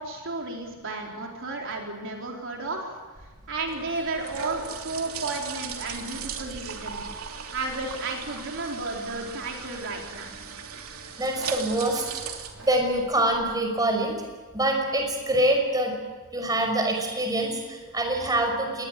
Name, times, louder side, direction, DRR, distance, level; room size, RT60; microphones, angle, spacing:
voice 1, 0.0-7.0 7.5-10.3, right 3 dB, 65° right, 0 dB, 4.2 m, -33 dB
sound 1, 3.2-13.5, right 6 dB, 90° right, 2.9 m, -38 dB
voice 2, 11.2-12.1 12.6-14.1 14.5-15.9 16.3-18.9, right 1 dB, 20° right, 3 dB, 5.6 m, -25 dB
25.5 x 20.5 x 8.5 m, 1.3 s
head